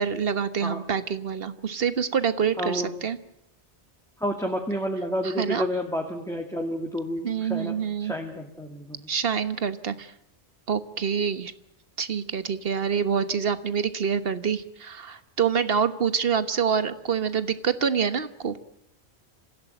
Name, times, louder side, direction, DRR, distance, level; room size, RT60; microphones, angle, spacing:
voice 1, 0.0-3.2 5.2-5.7 7.2-8.1 9.1-10.1 10.7-11.5 12.0-18.6, right 7 dB, 60° right, 12 dB, 1.4 m, -26 dB
voice 2, 2.6-2.9 4.2-7.7 8.0-9.1, equal, 5° left, 2 dB, 2.2 m, -30 dB
26.0 x 16.0 x 9.2 m, 0.77 s
omnidirectional pair, 1.1 m